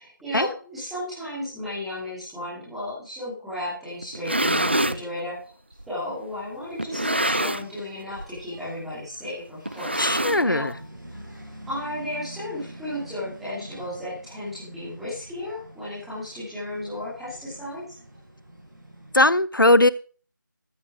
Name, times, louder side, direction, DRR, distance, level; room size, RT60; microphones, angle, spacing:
voice 1, 0.0-5.5 5.9-10.7 11.7-17.9, left 1 dB, ahead, 2.7 m, -34 dB
sound 1, 4.0-5.0 5.8-5.9 6.8-7.8 8.1-8.4 8.7-8.8 9.7-10.7, right 1 dB, 30° right, 0.4 m, -25 dB
Engine, 6.3-19.3, right 1 dB, 70° right, 6.7 m, -46 dB
voice 2, 10.0-10.7 19.1-19.9, left 1 dB, 75° left, 0.9 m, -19 dB
14.0 x 9.5 x 3.7 m
figure-of-eight pair, 170°, 11 cm